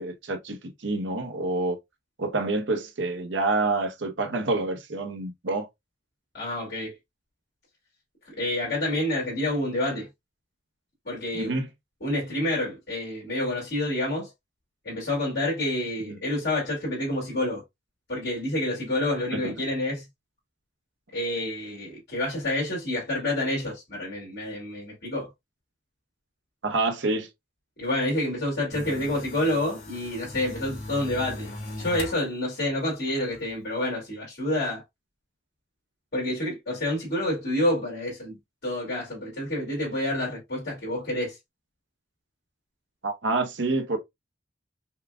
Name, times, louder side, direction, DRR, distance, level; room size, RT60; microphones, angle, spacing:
voice 1, 0.0-1.8 2.2-5.7 11.3-11.7 16.1-16.2 19.3-19.5 26.6-27.3 43.0-44.0, right 2 dB, 75° right, 0.9 m, -27 dB
voice 2, 6.3-6.9 8.3-10.1 11.0-11.5 12.0-14.3 14.8-17.6 18.1-20.1 21.1-25.3 27.8-31.5 31.8-34.8 36.1-38.4 38.6-41.4, left 1 dB, 60° left, 2.5 m, -28 dB
sound 1, 28.7-32.2 32.6-33.4, left 2 dB, 45° left, 2.6 m, -39 dB
5.5 x 2.3 x 2.4 m
head